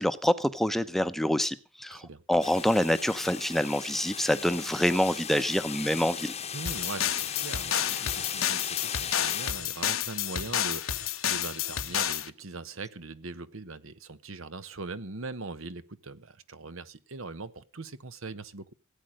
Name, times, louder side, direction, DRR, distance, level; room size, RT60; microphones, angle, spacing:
voice 1, 0.0-6.3, equal, ahead, 0.8 m, -26 dB
voice 2, 1.9-2.2 6.5-18.7, right 3 dB, 75° right, 1.1 m, -41 dB
sound 1, 2.4-9.5, left 8 dB, 30° left, 0.9 m, -37 dB
sound 2, 6.7-12.3, left 10 dB, 75° left, 1.0 m, -30 dB
17.0 x 8.8 x 6.4 m
head